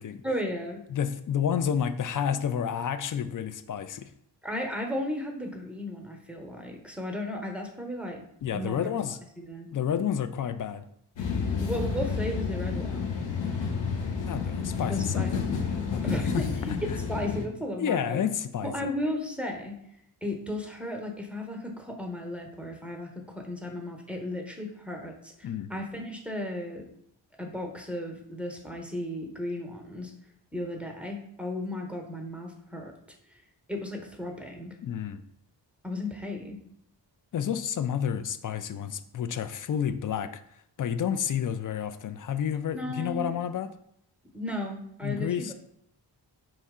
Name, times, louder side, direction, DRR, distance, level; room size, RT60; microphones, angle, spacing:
voice 1, 0.2-0.8 4.4-8.2 8.5-8.9 9.4-9.7 11.6-13.1 14.9-15.3 16.0-16.7 17.1-18.2 18.6-19.8 20.2-26.8 27.4-30.1 30.5-32.9 33.7-34.7 35.8-36.6 42.7-43.4 44.3-45.5, left 1 dB, 5° right, 2 dB, 0.9 m, -35 dB
voice 2, 0.9-4.1 8.4-9.2 9.7-10.9 14.3-15.5 15.9-16.4 16.9-17.0 17.8-18.7 25.4-25.7 34.8-35.2 37.3-43.7 45.0-45.5, left 8 dB, 45° left, 11 dB, 0.5 m, -30 dB
sound 1, 11.2-17.4, left 5 dB, 85° left, 0.8 m, -30 dB
4.3 x 3.1 x 3.6 m, 0.71 s
cardioid pair, 60°, 44 cm